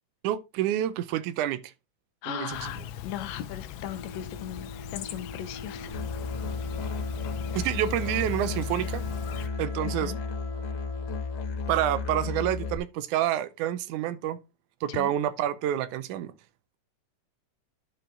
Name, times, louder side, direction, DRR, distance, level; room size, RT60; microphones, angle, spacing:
voice 1, 0.2-1.6 2.3-2.7 7.6-9.0 9.6-10.1 11.7-14.4 14.8-16.3, right 12 dB, 80° right, 1.9 m, -28 dB
voice 2, 2.2-6.2 7.5-7.7 9.8-10.2 14.9-15.2, left 11 dB, 75° left, 1.7 m, -38 dB
Chirp tweet, 2.5-9.5, left 10 dB, 90° left, 2.4 m, -41 dB
Wind instrument woodwind instrument, 3.9-12.6, right 1 dB, 10° right, 2.4 m, -44 dB
Musical instrument, 5.9-12.8, left 5 dB, 55° left, 2.2 m, -33 dB
11.5 x 4.6 x 3.7 m
omnidirectional pair, 3.8 m